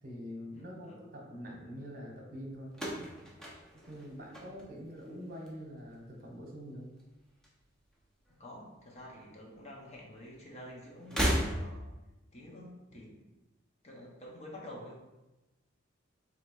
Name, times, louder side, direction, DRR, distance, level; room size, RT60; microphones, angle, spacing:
voice 1, 0.0-2.7 3.9-6.9 12.9-13.0, equal, 50° right, 0 dB, 1.0 m, -45 dB
voice 2, 0.5-1.0 8.4-11.8 12.3-13.2 13.8-15.2, left 1 dB, 35° left, -2 dB, 0.8 m, -49 dB
sound 1, 2.7-5.0 5.3-5.9 7.0-8.0 8.3-8.4 9.5-9.6 11.0-12.0, equal, 5° left, 0.7 m, -35 dB
3.1 x 2.8 x 4.5 m, 1.0 s
head